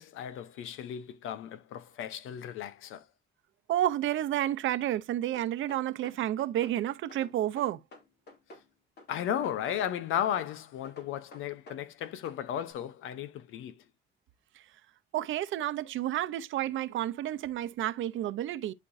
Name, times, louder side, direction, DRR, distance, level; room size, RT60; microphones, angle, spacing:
voice 1, 0.0-3.0 9.1-13.7, left 10 dB, 85° left, 0.9 m, -35 dB
voice 2, 3.7-7.8 14.5-14.6 15.1-18.7, right 12 dB, 80° right, 0.8 m, -30 dB
sound 1, 5.3-6.8 7.1-8.7 9.0-10.5 10.8-12.4, left 2 dB, 55° left, 2.7 m, -51 dB
11.5 x 4.5 x 2.7 m
cardioid pair, 90°, 20 cm